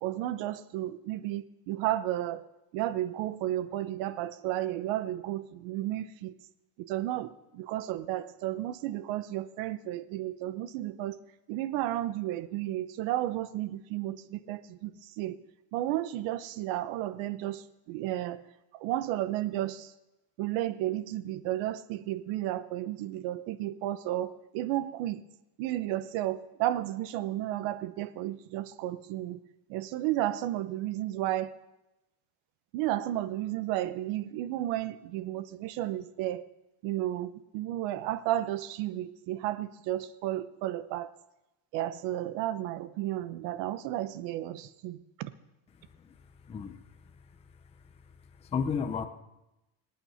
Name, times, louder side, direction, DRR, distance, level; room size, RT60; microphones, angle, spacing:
voice 1, 0.0-2.5 2.7-6.3 6.8-11.2 11.5-15.4 15.7-18.4 18.7-19.9 20.4-25.3 25.6-29.4 29.7-31.6 32.7-36.5 36.8-41.1 41.7-45.3, right 14 dB, 65° right, 15 dB, 1.0 m, -33 dB
voice 2, 46.4-46.8 48.4-49.1, left 6 dB, 15° left, 7 dB, 0.6 m, -32 dB
25.5 x 9.1 x 5.7 m, 0.95 s
cardioid pair, 175°, 48 cm